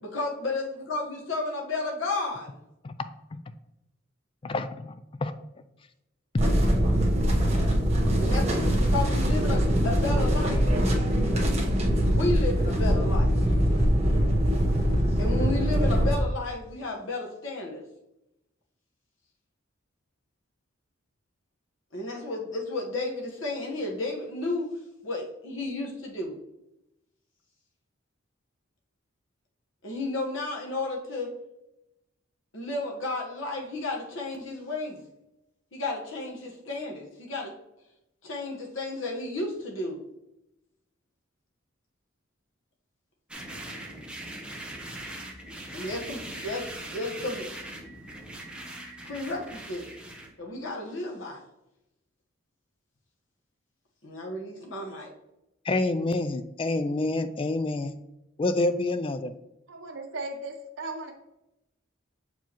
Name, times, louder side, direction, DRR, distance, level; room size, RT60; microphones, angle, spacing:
voice 1, 0.0-2.5 8.2-10.7 12.1-13.3 15.2-17.8 21.9-24.7 25.0-26.4 29.8-31.3 32.5-35.0 35.7-37.5 38.2-40.0 45.7-47.5 49.0-49.9 50.4-51.4 54.0-55.1, left 2 dB, 85° left, -1 dB, 1.3 m, -32 dB
voice 2, 4.4-5.3 55.7-58.0 58.4-59.3, left 2 dB, 25° left, 11 dB, 0.3 m, -28 dB
sound 1, 6.4-16.1, equal, 35° right, 1.1 m, -23 dB
sound 2, 43.3-50.3, right 1 dB, 5° right, 0.7 m, -40 dB
voice 3, 59.7-61.1, right 2 dB, 80° right, 2 dB, 0.8 m, -36 dB
6.9 x 4.6 x 3.0 m, 0.90 s
head